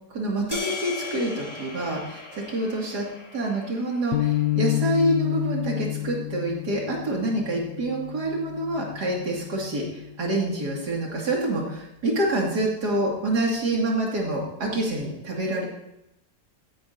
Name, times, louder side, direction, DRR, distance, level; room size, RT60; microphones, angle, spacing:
voice 1, 0.1-3.1 3.3-15.7, right 1 dB, 65° right, -2 dB, 2.8 m, -27 dB
sound 1, 0.5-4.9, left 3 dB, 25° left, 1.8 m, -38 dB
sound 2, 4.1-10.5, left 16 dB, 85° left, 1.3 m, -30 dB
16.5 x 9.7 x 2.7 m, 0.85 s
omnidirectional pair, 1.9 m